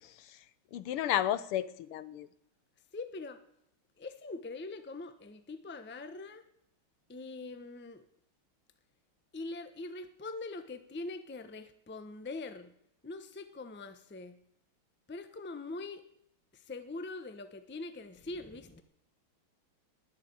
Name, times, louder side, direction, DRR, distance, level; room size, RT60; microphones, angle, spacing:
voice 1, 0.0-0.4 0.7-2.3, left 11 dB, 90° left, 15 dB, 1.8 m, -33 dB
voice 2, 2.9-3.4 4.0-6.4 7.1-8.0 9.3-12.7 13.0-14.4 15.1-16.0 16.5-18.8, left 3 dB, 10° left, 10 dB, 0.5 m, -43 dB
20.0 x 7.5 x 8.8 m, 0.76 s
omnidirectional pair, 2.4 m